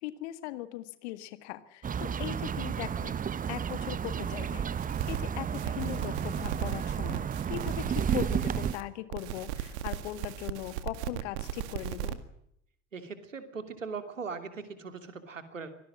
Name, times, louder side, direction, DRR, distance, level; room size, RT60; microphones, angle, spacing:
voice 1, 0.0-3.2 3.5-4.6 5.1-12.2, left 14 dB, 60° left, 12 dB, 1.9 m, -39 dB
sound 1, 1.8-8.7, right 8 dB, 20° right, 0.9 m, -32 dB
sound 2, 4.8-5.2 5.5-8.8 9.1-12.1, right 12 dB, 60° right, 2.1 m, -37 dB
voice 2, 12.9-15.7, right 5 dB, 85° right, 8 dB, 2.8 m, -40 dB
25.0 x 18.0 x 7.6 m, 0.72 s
figure-of-eight pair, 65°, 37 cm